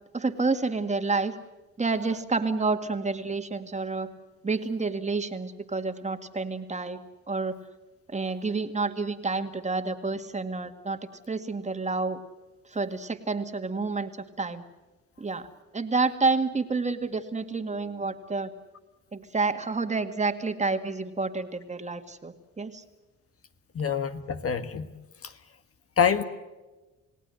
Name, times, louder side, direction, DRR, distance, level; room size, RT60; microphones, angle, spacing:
voice 1, 0.1-1.3 1.8-4.1 4.4-7.6 8.1-11.0 11.3-12.2 12.7-14.1 14.4-14.6 15.2-15.5 15.7-18.5 19.1-22.8, right 3 dB, 25° right, 7 dB, 2.1 m, -29 dB
voice 2, 23.7-24.9 26.0-26.2, left 7 dB, 50° left, 9 dB, 1.5 m, -25 dB
29.5 x 17.5 x 7.8 m, 1.1 s
cardioid pair, 90°, 30 cm